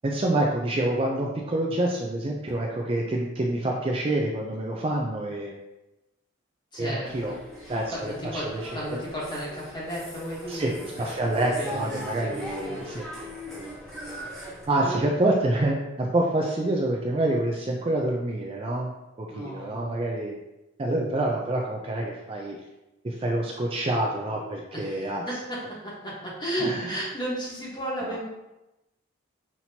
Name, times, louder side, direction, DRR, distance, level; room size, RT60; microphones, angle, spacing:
voice 1, 0.0-5.6 6.8-7.3 7.7-8.6 8.9-9.0 10.5-13.0 13.6-13.7 14.7-18.9 19.2-20.3 20.8-22.6 23.0-25.2 26.6-27.0 28.0-28.2, right 1 dB, 25° right, -1 dB, 0.4 m, -27 dB
voice 2, 6.7-11.1 11.5-12.9 14.8-15.0 19.3-20.0 24.7-28.3, equal, 20° left, -6 dB, 1.2 m, -34 dB
sound 1, 7.0-14.6, equal, ahead, 0.8 m, -40 dB
5.8 x 2.9 x 2.7 m, 0.96 s
head